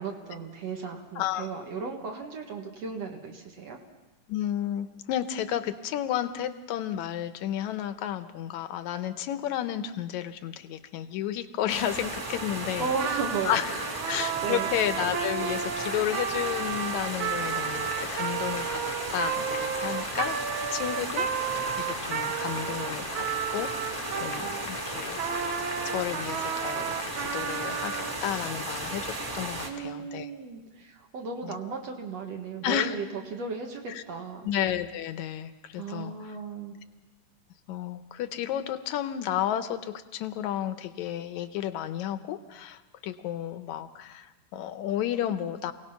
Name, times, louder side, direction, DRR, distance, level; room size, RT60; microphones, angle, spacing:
voice 1, 0.0-3.8 12.8-14.7 29.6-34.5 35.8-36.8, right 5 dB, 60° right, 1 dB, 2.8 m, -35 dB
voice 2, 1.2-1.5 4.3-12.9 13.5-13.6 14.1-23.3 23.5-23.9 24.2-25.2 25.8-30.3 31.4-31.5 32.6-33.0 33.9-34.0 34.4-36.1 37.7-45.7, left 11 dB, 80° left, 10 dB, 2.2 m, -32 dB
sound 1, 11.7-29.7, right 2 dB, 25° right, 2.0 m, -35 dB
Trumpet, 12.9-24.7 25.2-28.2, right 8 dB, 80° right, 1.1 m, -33 dB
Applause, 15.8-28.1, left 7 dB, 60° left, 1.4 m, -43 dB
27.5 x 18.0 x 5.8 m, 1.1 s
omnidirectional pair, 3.4 m